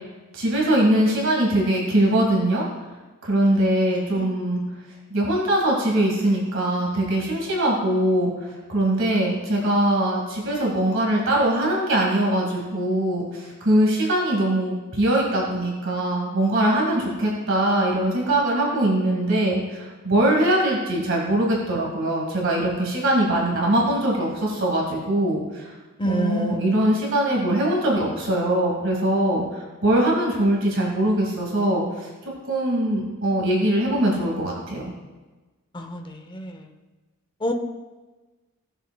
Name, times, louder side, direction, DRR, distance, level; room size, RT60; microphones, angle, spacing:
voice 1, 0.3-2.6 3.2-4.6 5.1-25.7 26.0-32.1 32.5-34.9, right 1 dB, 60° right, -2 dB, 1.8 m, -22 dB
voice 2, 3.9-4.3 26.0-26.7 35.7-36.7 37.4-37.5, equal, 20° left, 4 dB, 0.7 m, -28 dB
16.0 x 6.9 x 2.3 m, 1.2 s
head